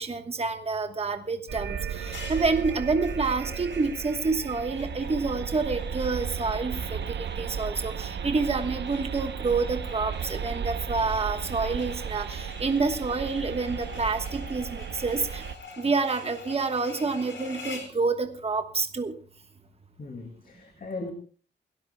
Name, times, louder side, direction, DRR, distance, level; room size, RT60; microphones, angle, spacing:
voice 1, 0.0-15.4 15.8-19.1, right 4 dB, 30° right, 6 dB, 1.2 m, -28 dB
sound 1, 1.5-15.5, right 7 dB, 70° right, 0.9 m, -35 dB
sound 2, 2.0-18.0, left 4 dB, 80° left, 4.6 m, -47 dB
voice 2, 20.0-21.1, left 3 dB, 50° left, 4 dB, 2.3 m, -38 dB
28.5 x 13.5 x 2.3 m, 0.42 s
wide cardioid pair, 115°, 19 cm